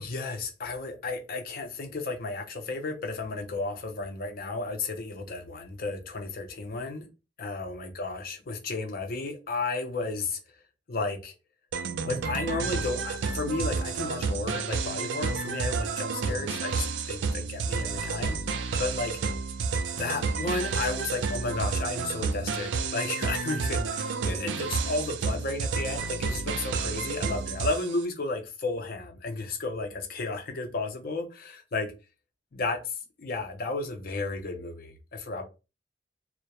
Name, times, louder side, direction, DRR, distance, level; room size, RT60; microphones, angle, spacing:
voice 1, 0.0-7.1 7.4-10.4 10.9-11.3 12.1-18.4 18.8-19.2 19.9-31.9 32.5-35.4, left 3 dB, 55° left, 0.5 m, -33 dB
sound 1, 11.7-28.0, right 4 dB, 90° right, 0.4 m, -30 dB
2.3 x 2.0 x 2.8 m
head